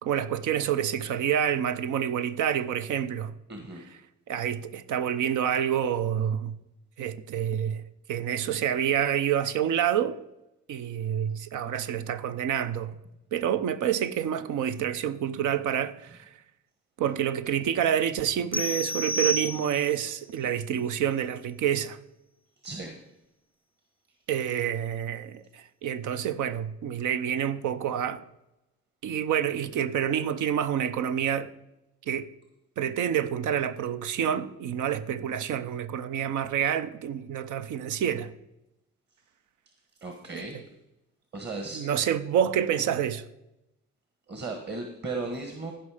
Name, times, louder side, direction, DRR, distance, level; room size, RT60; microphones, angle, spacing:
voice 1, 0.0-3.3 4.3-6.6 7.0-7.8 8.1-10.2 10.7-12.9 13.3-16.3 17.0-22.0 24.3-28.2 29.0-31.5 32.1-32.3 32.8-38.3 40.3-40.6 41.7-43.2, right 9 dB, 80° right, 0.7 m, -28 dB
voice 2, 3.5-3.8 22.6-22.9 40.0-40.6 41.3-41.8 44.3-45.7, right 3 dB, 35° right, 1.4 m, -35 dB
sound 1, 18.5-20.1, equal, 5° left, 0.5 m, -30 dB
15.0 x 5.4 x 4.9 m
cardioid pair, 90°, 30 cm